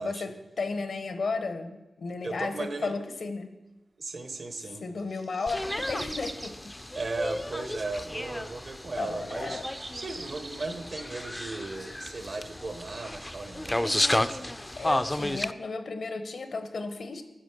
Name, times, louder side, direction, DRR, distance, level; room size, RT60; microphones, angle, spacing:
voice 1, 0.0-3.5 4.8-6.5 9.0-9.6 14.8-17.2, left 3 dB, 80° left, 8 dB, 1.0 m, -34 dB
voice 2, 2.2-3.0 4.0-4.8 6.9-9.6 9.9-14.6, right 3 dB, 65° right, 8 dB, 1.0 m, -36 dB
sound 1, 5.0-6.6 7.3-7.4 9.3-10.8, right 2 dB, 35° right, 0.7 m, -42 dB
sound 2, 5.5-15.5, left 1 dB, 15° left, 0.4 m, -33 dB
10.0 x 5.5 x 6.5 m, 1.0 s
cardioid pair, 65°, 0 cm